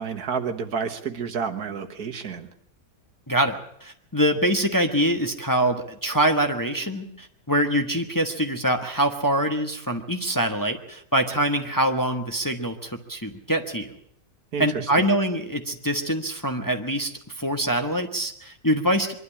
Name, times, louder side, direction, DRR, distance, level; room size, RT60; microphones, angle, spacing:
voice 1, 0.0-2.5 14.5-14.7 15.0-15.1, right 6 dB, 75° right, 7 dB, 1.9 m, -30 dB
voice 2, 3.3-13.9 14.6-19.1, right 1 dB, 15° left, 5 dB, 1.1 m, -24 dB
23.5 x 12.0 x 9.9 m, 0.69 s
omnidirectional pair, 1.7 m